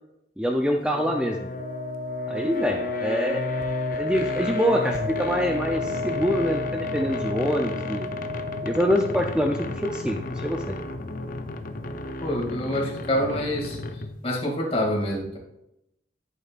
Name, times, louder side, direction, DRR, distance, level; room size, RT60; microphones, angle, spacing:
voice 1, 0.4-1.5 2.3-3.7 3.9-8.1 8.6-10.8, equal, 5° right, 2 dB, 0.5 m, -25 dB
sound 1, 0.9-14.3, left 2 dB, 50° left, 0.7 m, -33 dB
Wind instrument woodwind instrument, 1.5-9.3, left 3 dB, 75° right, 0.6 m, -32 dB
voice 2, 12.2-15.4, equal, 35° left, -1 dB, 2.4 m, -27 dB
10.5 x 8.4 x 2.5 m, 0.86 s
head